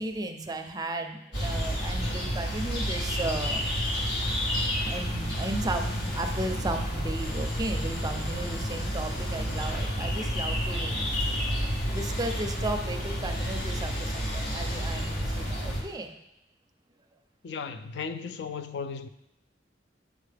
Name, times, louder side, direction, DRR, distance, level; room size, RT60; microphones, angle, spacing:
voice 1, 0.0-3.6 4.9-11.0 11.9-16.2, right 2 dB, 20° right, 0.5 m, -35 dB
sound 1, 1.3-15.8, equal, 85° left, 1.3 m, -30 dB
voice 2, 17.4-19.1, left 5 dB, 65° left, 0.4 m, -35 dB
8.0 x 4.6 x 3.3 m
head